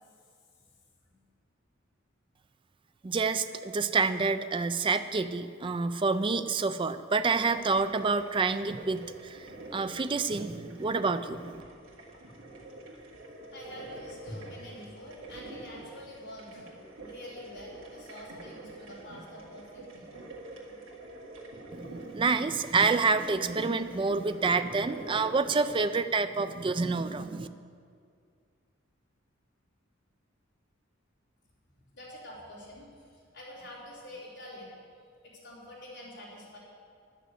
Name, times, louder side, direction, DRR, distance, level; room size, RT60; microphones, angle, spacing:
voice 1, 3.0-9.4 9.7-11.6 21.7-27.5, right 4 dB, 25° right, 10 dB, 0.4 m, -28 dB
sound 1, 7.2-25.8, right 2 dB, 80° right, 1.9 m, -47 dB
voice 2, 13.5-16.7 17.1-20.2 31.9-34.8 35.2-36.6, left 1 dB, 65° left, -9 dB, 3.6 m, -46 dB
11.0 x 6.5 x 8.1 m, 2.2 s
head